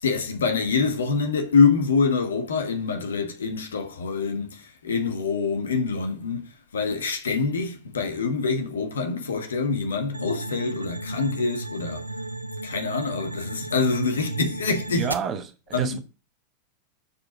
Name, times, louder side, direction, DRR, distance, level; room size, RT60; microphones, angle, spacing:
voice 1, 0.0-12.1 12.6-15.1 15.7-16.0, left 4 dB, 70° left, 1.4 m, -25 dB
sound 1, 10.1-15.1, right 2 dB, 80° right, 0.6 m, -34 dB
voice 2, 14.9-16.0, right 7 dB, 30° right, 1.1 m, -30 dB
7.1 x 4.8 x 5.7 m
figure-of-eight pair, 90°, 0 cm